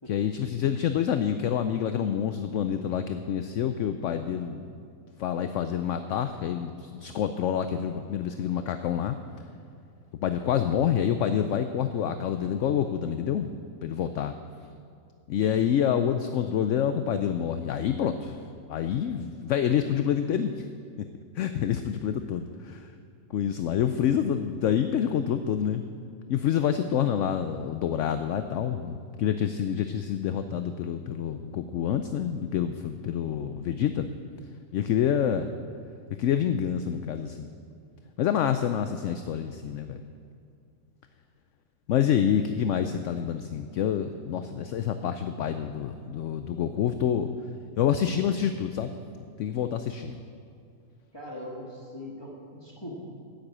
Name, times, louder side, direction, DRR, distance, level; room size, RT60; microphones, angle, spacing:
voice 1, 0.1-4.6 5.2-9.2 10.2-13.5 13.8-14.3 15.3-18.4 18.7-20.6 21.4-22.9 23.3-25.8 26.3-34.1 34.7-35.5 36.2-37.5 38.2-40.0 41.9-47.3 47.8-48.9 49.4-50.2, left 9 dB, 65° left, 9 dB, 0.8 m, -27 dB
voice 2, 51.1-52.9, left 1 dB, 15° left, -3 dB, 1.6 m, -40 dB
10.5 x 7.9 x 8.6 m, 2.4 s
omnidirectional pair, 1.6 m